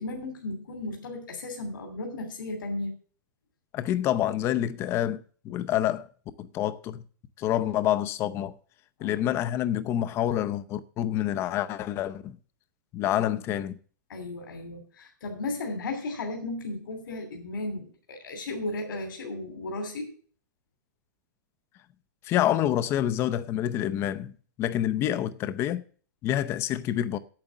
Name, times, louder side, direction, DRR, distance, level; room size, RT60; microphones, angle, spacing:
voice 1, 0.0-2.9 9.0-9.3 14.1-20.1, left 2 dB, 85° left, 2.9 m, -35 dB
voice 2, 3.7-6.1 6.4-7.0 7.4-8.5 9.0-12.4 12.9-13.7 22.3-24.3 24.6-25.8 26.2-27.2, left 12 dB, 25° left, 0.6 m, -27 dB
8.9 x 7.8 x 7.2 m
supercardioid pair, 160°, 11 cm